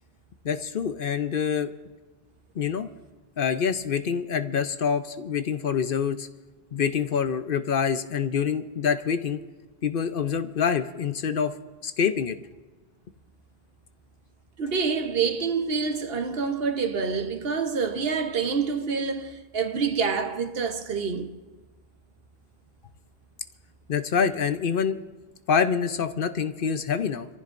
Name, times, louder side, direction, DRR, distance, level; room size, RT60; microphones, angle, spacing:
voice 1, 0.4-1.7 2.6-2.9 3.4-6.3 6.7-9.4 9.8-11.5 11.8-12.4 23.9-25.0 25.5-27.3, left 7 dB, 60° left, 0.8 m, -26 dB
voice 2, 14.6-21.4, right 5 dB, 70° right, 1.3 m, -27 dB
27.0 x 15.0 x 2.6 m
omnidirectional pair, 1.1 m